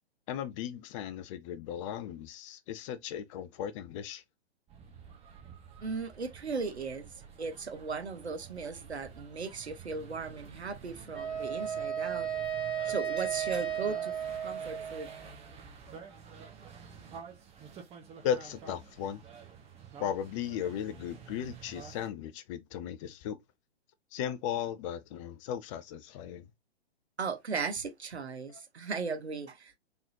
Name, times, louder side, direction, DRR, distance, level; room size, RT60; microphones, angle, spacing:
voice 1, 0.3-4.2 18.2-19.2 20.0-23.4 24.1-26.5, left 9 dB, 30° left, 0.6 m, -36 dB
sound 1, 4.7-22.1, right 6 dB, 20° right, 1.1 m, -50 dB
voice 2, 5.8-12.3 12.8-14.1 14.4-15.1 27.2-29.8, right 4 dB, 85° right, 1.2 m, -37 dB
Wind instrument woodwind instrument, 11.1-15.3, right 8 dB, ahead, 1.2 m, -34 dB
4.0 x 3.9 x 2.8 m
hypercardioid pair, 125°, 32 cm